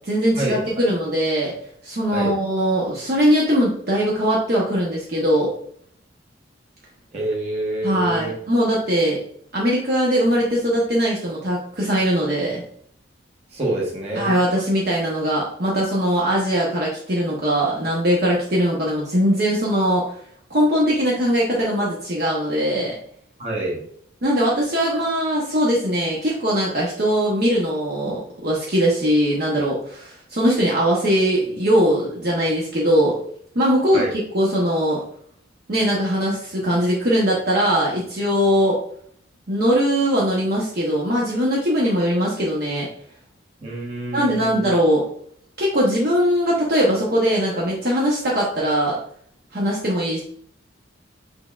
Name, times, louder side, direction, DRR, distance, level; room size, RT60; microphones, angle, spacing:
voice 1, 0.1-1.5 1.8-5.5 7.8-9.2 9.5-12.6 14.1-20.1 20.5-22.9 24.2-33.1 33.5-35.0 35.7-38.8 39.5-42.9 44.1-45.0 45.6-49.0 49.5-50.2, equal, 50° right, -4 dB, 0.9 m, -20 dB
voice 2, 7.1-8.3 13.5-14.3 23.4-23.8 33.9-34.1 43.6-44.7, right 2 dB, 30° right, -3 dB, 1.3 m, -26 dB
6.4 x 3.5 x 2.4 m, 0.64 s
head